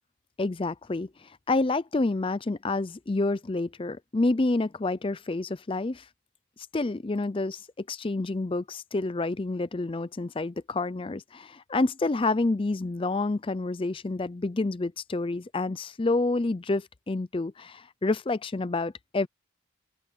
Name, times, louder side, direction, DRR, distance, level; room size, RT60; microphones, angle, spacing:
voice 1, 0.4-6.1 6.7-19.3, left 2 dB, 25° left, 0.4 m, -28 dB
head